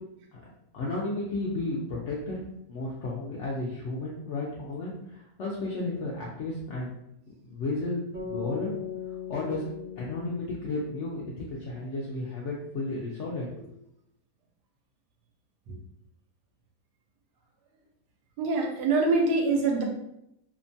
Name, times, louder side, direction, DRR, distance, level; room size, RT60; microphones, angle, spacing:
voice 1, 0.7-2.4 2.7-6.9 7.4-8.7 9.3-9.7 10.0-13.7, left 2 dB, 75° left, -4 dB, 0.6 m, -33 dB
sound 1, 8.1-12.4, left 7 dB, 50° right, 0.6 m, -40 dB
voice 2, 18.4-19.8, right 3 dB, 80° right, 1 dB, 1.2 m, -24 dB
2.8 x 2.2 x 2.6 m, 0.80 s
omnidirectional pair, 1.7 m